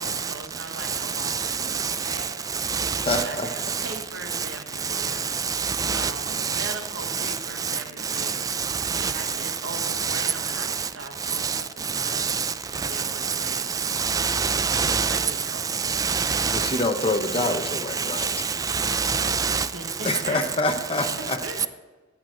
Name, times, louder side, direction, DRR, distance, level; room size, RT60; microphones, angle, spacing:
voice 1, 0.0-2.4 3.1-5.3 5.9-13.7 15.1-15.6 19.5-20.4 21.2-21.7, right 3 dB, 80° right, 1.2 m, -39 dB
voice 2, 1.2-2.2 2.7-3.2 4.9-5.1 5.4-6.1 6.4-6.7 7.2-7.3 8.2-9.1 9.7-10.3 10.6-10.7 11.4-11.6 11.9-12.5 12.9-15.3 15.8-16.8 17.4-19.7, right 6 dB, 20° right, 0.3 m, -26 dB
voice 3, 3.1-3.5 16.5-18.3 20.0-21.4, left 2 dB, 30° left, 0.9 m, -26 dB
14.0 x 6.1 x 3.9 m
head